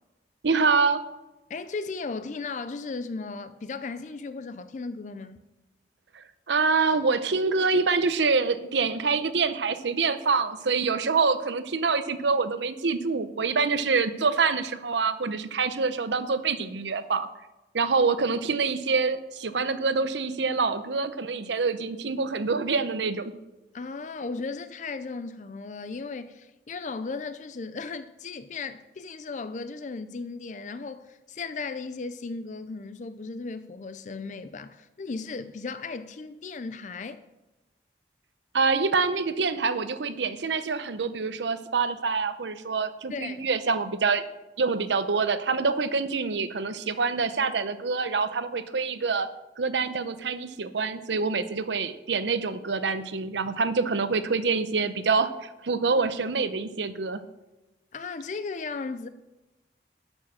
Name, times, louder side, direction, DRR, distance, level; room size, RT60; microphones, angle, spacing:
voice 1, 0.4-1.0 6.1-17.3 17.7-23.3 38.5-44.2 44.6-49.3 49.6-57.2, right 4 dB, 85° right, 0.7 m, -26 dB
voice 2, 1.5-5.4 23.7-37.2 43.1-43.5 57.9-59.1, left 4 dB, 45° left, 0.4 m, -36 dB
11.5 x 6.4 x 6.3 m
head